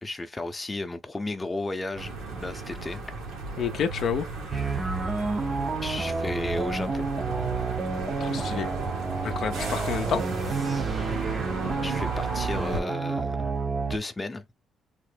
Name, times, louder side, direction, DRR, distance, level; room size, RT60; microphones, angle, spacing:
voice 1, 0.0-3.0 5.8-7.1 11.8-13.5 13.9-14.5, left 2 dB, 20° left, 0.6 m, -33 dB
sound 1, 1.9-12.8, right 3 dB, 90° right, 1.3 m, -34 dB
voice 2, 3.6-4.2 8.2-8.7 9.2-10.2, left 7 dB, 65° left, 0.4 m, -29 dB
sound 2, 4.5-14.0, right 4 dB, 30° right, 0.5 m, -30 dB
3.5 x 2.0 x 3.3 m
cardioid pair, 90°, 0 cm